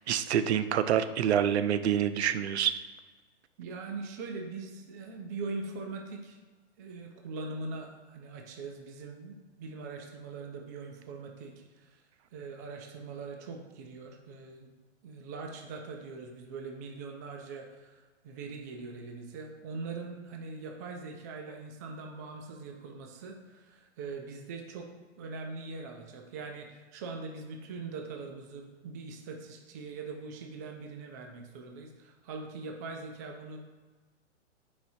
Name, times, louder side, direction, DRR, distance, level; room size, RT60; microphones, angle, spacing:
voice 1, 0.1-2.7, right 9 dB, 70° right, 11 dB, 0.6 m, -27 dB
voice 2, 3.6-6.4 6.8-12.0 12.3-14.7 15.0-24.9 25.2-33.6, right 4 dB, 15° right, 2 dB, 0.3 m, -42 dB
9.1 x 5.0 x 2.6 m, 1.3 s
hypercardioid pair, 145°, 35 cm